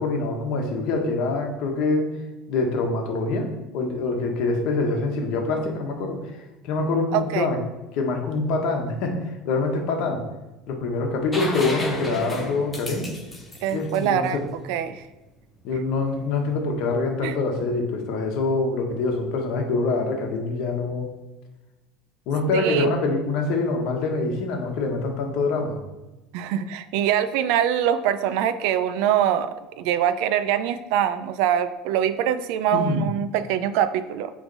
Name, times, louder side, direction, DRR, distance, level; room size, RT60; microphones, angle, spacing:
voice 1, 0.0-2.1 2.5-7.6 7.9-10.2 10.7-13.1 13.7-14.5 15.6-21.1 22.3-25.8 32.7-33.0, left 3 dB, 60° left, 3 dB, 1.2 m, -25 dB
voice 2, 7.1-7.5 13.6-14.4 14.7-15.0 17.2-17.4 22.5-22.9 26.3-34.3, right 10 dB, 70° right, 12 dB, 0.4 m, -23 dB
sound 1, 11.3-15.0 16.9-17.0, left 2 dB, 10° left, 0.9 m, -34 dB
8.7 x 3.2 x 4.0 m, 1.1 s
cardioid pair, 150°, 0 cm